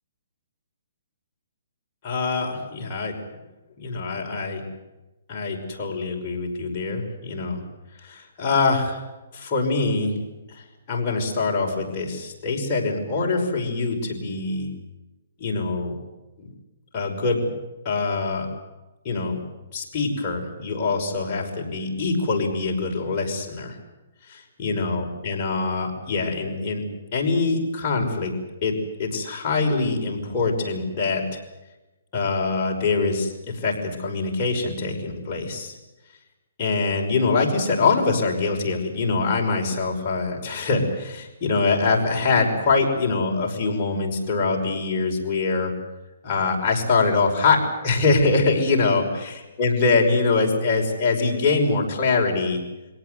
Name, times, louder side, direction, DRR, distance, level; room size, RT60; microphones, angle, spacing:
voice 1, 2.0-3.1 3.8-4.6 5.3-7.6 8.0-9.0 9.3-10.1 10.5-10.6 10.9-14.7 15.4-15.9 16.4-16.5 16.9-17.4 17.8-18.5 19.0-19.4 19.7-23.8 24.3-26.8 27.1-28.3 28.6-28.7 29.0-31.2 32.1-35.7 36.6-45.7 46.2-52.6, left 3 dB, 30° left, -1 dB, 5.8 m, -24 dB
23.0 x 18.0 x 9.5 m, 1.1 s
hypercardioid pair, 155°, 0 cm